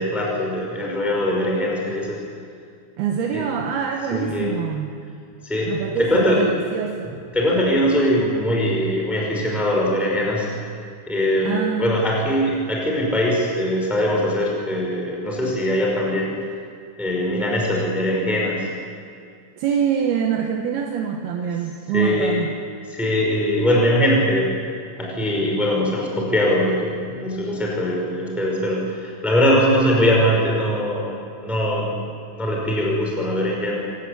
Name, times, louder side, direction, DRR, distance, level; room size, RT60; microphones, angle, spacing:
voice 1, 0.0-2.2 3.3-3.4 4.1-4.5 5.4-6.4 7.3-10.5 11.1-16.4 17.0-18.7 21.9-22.3 22.9-24.5 25.0-31.9 32.3-33.9, equal, ahead, -2 dB, 4.8 m, -21 dB
voice 2, 3.0-5.0 5.7-7.2 11.4-12.1 19.6-22.6, right 7 dB, 70° right, 2 dB, 2.9 m, -25 dB
25.5 x 18.5 x 8.4 m, 2.3 s
omnidirectional pair, 5.5 m